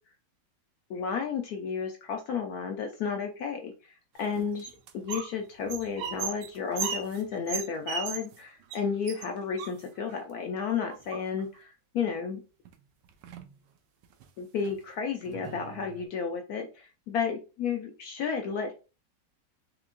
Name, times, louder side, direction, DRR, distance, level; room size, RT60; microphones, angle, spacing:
voice 1, 0.9-3.9 4.2-12.4 14.4-18.7, left 6 dB, 70° left, 3 dB, 0.9 m, -32 dB
sound 1, 4.2-5.3 5.6-8.4 8.7-8.8 9.1-10.2 10.9-11.6 12.7-12.8 13.1-13.5 14.0-14.3 14.6-14.8 15.3-16.1, right 7 dB, 75° right, 1.2 m, -37 dB
4.5 x 2.9 x 2.4 m, 0.32 s
omnidirectional pair, 2.0 m